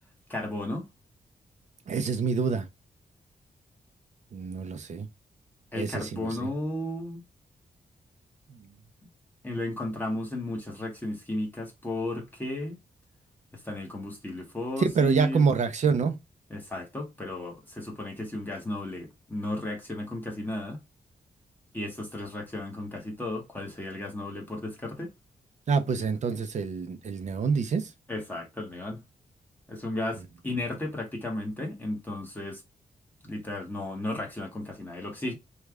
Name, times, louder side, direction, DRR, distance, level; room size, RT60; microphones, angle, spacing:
voice 1, 0.3-0.9 5.7-7.2 9.4-12.8 13.6-15.5 16.5-20.8 21.7-25.1 28.1-29.0 29.7-32.6 33.2-35.3, left 1 dB, 10° left, 1.0 m, -34 dB
voice 2, 1.9-2.7 4.3-5.1 5.8-6.5 14.8-16.2 25.7-27.9, right 5 dB, 50° right, 0.6 m, -26 dB
3.1 x 2.3 x 3.5 m
wide cardioid pair, 165°, 15 cm